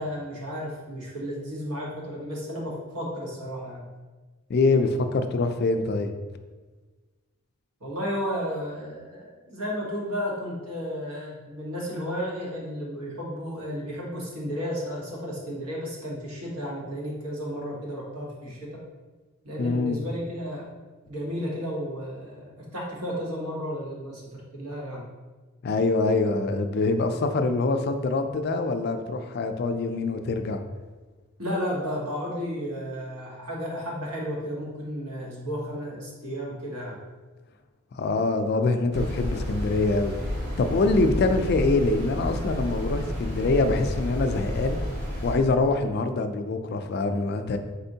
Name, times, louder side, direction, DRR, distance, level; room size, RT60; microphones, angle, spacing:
voice 1, 0.0-3.8 7.8-18.8 19.4-20.7 21.1-25.0 31.4-37.0, equal, 90° right, -4 dB, 1.3 m, -33 dB
voice 2, 4.5-6.1 19.6-20.0 25.6-30.6 37.9-40.1 40.6-44.8 45.2-47.6, left 3 dB, 45° left, 7 dB, 0.3 m, -24 dB
sound 1, 38.9-45.4, equal, 50° right, 0.9 m, -31 dB
4.3 x 4.2 x 2.7 m, 1.3 s
head